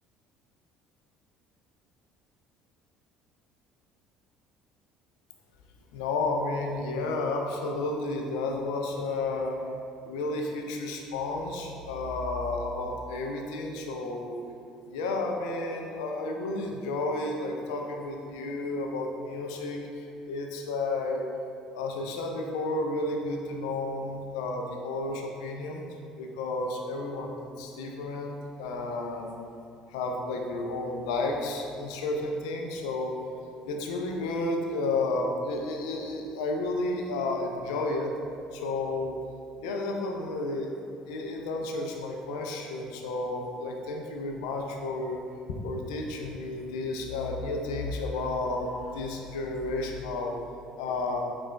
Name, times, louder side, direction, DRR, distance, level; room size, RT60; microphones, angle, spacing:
voice 1, 5.9-9.6 10.0-14.4 14.9-19.8 20.3-21.3 21.7-25.8 26.2-29.4 29.9-33.2 33.6-38.1 38.5-39.2 39.6-40.8 41.1-45.2 45.6-50.4 50.8-51.3, left 2 dB, 70° left, 2 dB, 0.4 m, -32 dB
6.1 x 2.3 x 2.2 m, 2.5 s
figure-of-eight pair, 55°, 3 cm